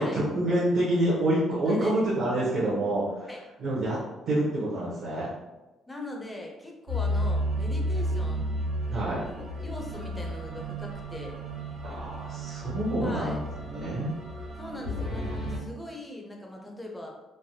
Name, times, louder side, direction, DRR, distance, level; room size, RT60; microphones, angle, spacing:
voice 1, 0.0-3.3 3.6-4.0 4.3-5.3 8.9-9.2 11.8-13.4 13.7-14.1, right 1 dB, 55° right, -7 dB, 0.7 m, -27 dB
voice 2, 1.7-2.0 3.3-3.4 5.9-8.5 9.3-11.4 12.9-13.4 14.6-17.1, left 1 dB, 10° left, 0 dB, 0.4 m, -40 dB
sound 1, 6.9-15.6, equal, 80° right, 1.2 m, -32 dB
3.2 x 2.1 x 2.6 m, 1.1 s
cardioid pair, 160°, 0 cm